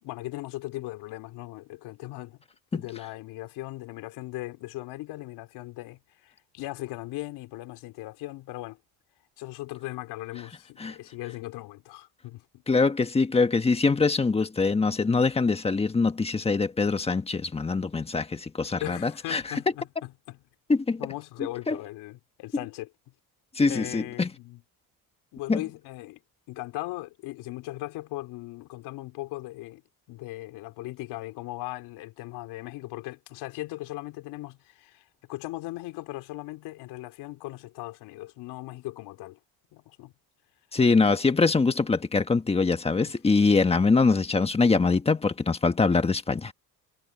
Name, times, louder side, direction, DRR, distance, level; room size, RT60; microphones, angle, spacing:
voice 1, 0.0-2.4 2.7-8.8 9.4-12.6 18.8-20.4 21.0-22.9 23.7-24.6 25.3-26.2 26.5-29.8 30.1-39.4 39.7-40.1 43.0-43.2, left 18 dB, 80° left, 3.7 m, -38 dB
voice 2, 12.7-19.5 20.7-21.0 21.7-21.8 23.5-24.3 25.5-25.6 40.7-46.5, left 4 dB, 15° left, 1.4 m, -23 dB
cardioid pair, 145°, 39 cm